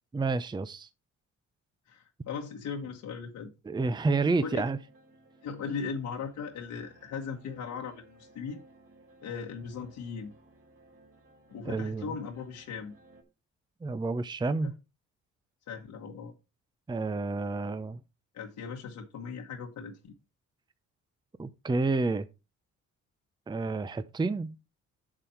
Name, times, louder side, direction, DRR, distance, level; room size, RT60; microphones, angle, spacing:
voice 1, 0.1-0.9 3.7-4.8 11.7-12.1 13.8-14.7 16.9-18.0 21.4-22.3 23.5-24.5, right 3 dB, 15° right, 0.6 m, -29 dB
voice 2, 1.9-3.5 4.4-4.7 5.4-8.6 9.2-10.3 11.5-13.0 15.7-16.3 18.3-20.1, left 6 dB, 75° left, 1.5 m, -38 dB
sound 1, 4.5-13.2, right 2 dB, 45° right, 3.5 m, -59 dB
7.4 x 7.1 x 4.4 m
cardioid pair, 90°, 30 cm